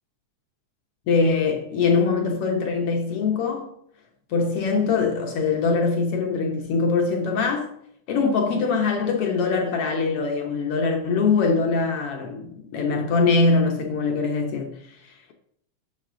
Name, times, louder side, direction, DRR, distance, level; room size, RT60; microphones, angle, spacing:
voice 1, 1.1-3.7 4.3-7.7 8.1-14.8, left 4 dB, 65° left, 1.5 m, -22 dB
9.9 x 6.4 x 3.7 m
omnidirectional pair, 3.5 m